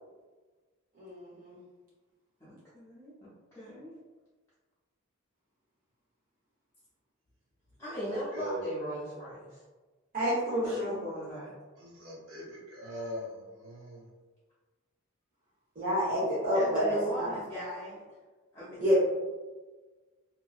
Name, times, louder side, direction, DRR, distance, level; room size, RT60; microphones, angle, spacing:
voice 1, 1.0-1.6 10.1-11.0 15.8-17.3 18.8-19.0, equal, 40° right, -8 dB, 0.9 m, -28 dB
voice 2, 2.4-3.9 7.8-9.6 10.2-10.3 10.6-11.5 16.5-18.2 18.5-18.8, right 1 dB, 15° left, -11 dB, 0.6 m, -38 dB
voice 3, 11.8-13.3 13.6-14.0 18.9-19.0, left 1 dB, 65° right, -4 dB, 0.6 m, -40 dB
2.7 x 2.6 x 2.4 m, 1.3 s
head